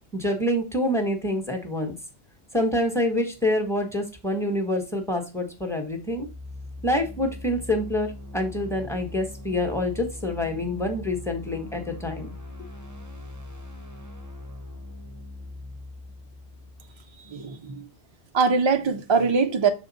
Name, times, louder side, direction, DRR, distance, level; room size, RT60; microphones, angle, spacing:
voice 1, 0.1-1.9 2.5-6.3 6.8-12.3, left 1 dB, 5° left, 1.1 m, -26 dB
sound 1, 5.9-17.7, left 2 dB, 20° right, 0.7 m, -41 dB
voice 2, 17.3-17.9 18.3-19.7, right 5 dB, 45° right, 0.3 m, -22 dB
6.3 x 3.9 x 4.1 m
omnidirectional pair, 1.1 m